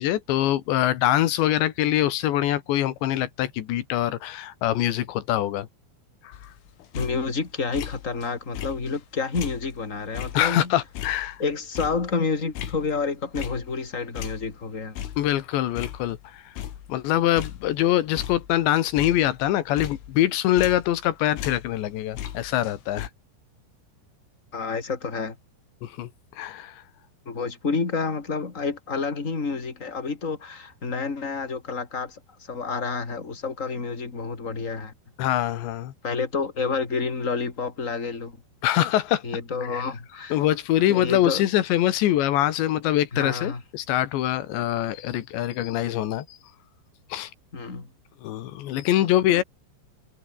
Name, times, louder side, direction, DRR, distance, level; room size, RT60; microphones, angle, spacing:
voice 1, 0.0-5.7 6.2-6.4 10.3-11.4 15.2-16.5 16.9-23.1 25.8-26.1 26.4-26.8 35.2-35.9 38.6-39.2 39.7-39.8 40.3-46.4 47.1-47.3 48.2-49.4, left 13 dB, 70° left, 3.7 m, -24 dB
sound 1, 6.3-8.3 8.6-13.9 14.2-16.3 16.6-17.1 17.4-21.1 21.4-23.1, left 11 dB, 85° left, 5.0 m, -37 dB
voice 2, 6.9-10.7 11.4-15.1 24.5-25.3 27.2-32.2 32.5-34.9 36.0-38.4 39.2-40.4 40.9-41.4 43.1-43.6 47.5-47.9 49.0-49.1 49.3-49.4, left 4 dB, 20° left, 2.9 m, -29 dB
omnidirectional pair, 5.5 m